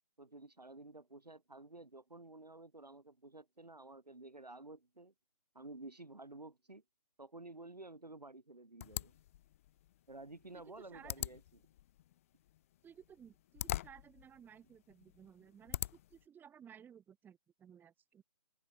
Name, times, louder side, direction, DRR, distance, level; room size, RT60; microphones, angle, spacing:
voice 1, 0.2-5.1 5.5-6.8 7.2-9.2 10.1-11.6, right 2 dB, 85° right, 3.1 m, -52 dB
sound 1, 8.8-16.2, left 13 dB, 20° left, 0.6 m, -45 dB
voice 2, 10.5-11.1 12.8-18.2, right 8 dB, 10° right, 4.6 m, -58 dB
figure-of-eight pair, 145°, 20 cm